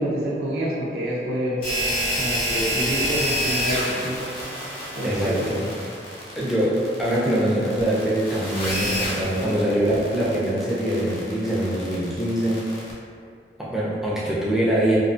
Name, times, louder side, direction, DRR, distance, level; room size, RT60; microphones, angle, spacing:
voice 1, 0.0-1.6 2.2-4.2 4.9-5.7, equal, 65° right, -7 dB, 0.5 m, -27 dB
sound 1, 1.6-12.9, equal, 55° left, 0.7 m, -28 dB
voice 2, 5.0-5.6 6.4-12.6 13.6-15.0, right 1 dB, ahead, -8 dB, 0.4 m, -23 dB
2.5 x 2.4 x 2.4 m, 2.2 s
head